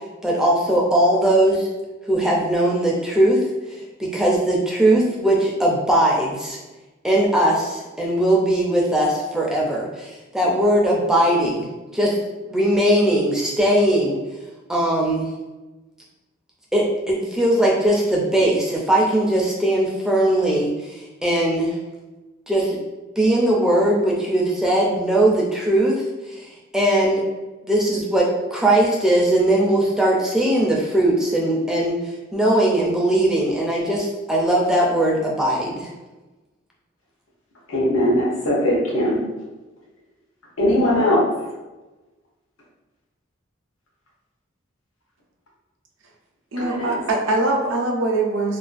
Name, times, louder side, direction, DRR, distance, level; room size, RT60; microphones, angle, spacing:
voice 1, 0.2-1.7 2.1-3.4 4.0-6.6 7.0-12.2 12.5-14.2 14.7-15.3 16.7-21.8 22.5-22.8 23.2-26.5 26.7-27.2 27.7-32.0 32.3-35.9, right 1 dB, 5° right, -3 dB, 0.4 m, -19 dB
voice 2, 37.7-39.3 40.6-41.4 46.6-47.1, left 1 dB, 90° left, -4 dB, 0.7 m, -20 dB
voice 3, 46.5-48.6, right 2 dB, 75° right, 0 dB, 0.5 m, -22 dB
2.4 x 2.2 x 2.4 m, 1.1 s
head